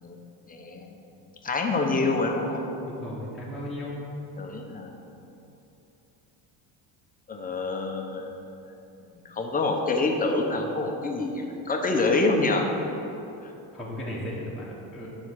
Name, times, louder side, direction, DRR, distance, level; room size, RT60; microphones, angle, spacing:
voice 1, 0.5-1.0 1.4-2.6 4.4-4.9 7.3-8.3 9.2-12.7 13.4-13.5, left 3 dB, 20° left, 2 dB, 0.9 m, -26 dB
voice 2, 2.9-4.1 13.7-15.1, left 1 dB, ahead, -8 dB, 1.4 m, -35 dB
9.5 x 4.5 x 6.3 m, 2.9 s
cardioid pair, 125°, 42 cm